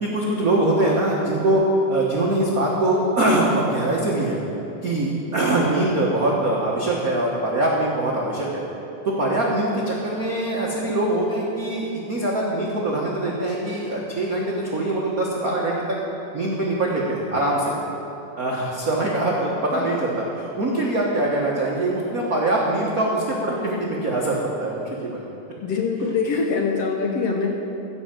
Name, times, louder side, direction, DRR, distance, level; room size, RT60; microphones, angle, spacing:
voice 1, 0.0-4.4 4.8-8.6 9.0-16.0 16.3-17.7 18.4-25.3, right 1 dB, 70° right, -4 dB, 0.8 m, -23 dB
voice 2, 25.6-27.5, left 4 dB, 70° left, 1 dB, 1.5 m, -23 dB
16.0 x 6.2 x 7.6 m, 3.0 s
omnidirectional pair, 3.6 m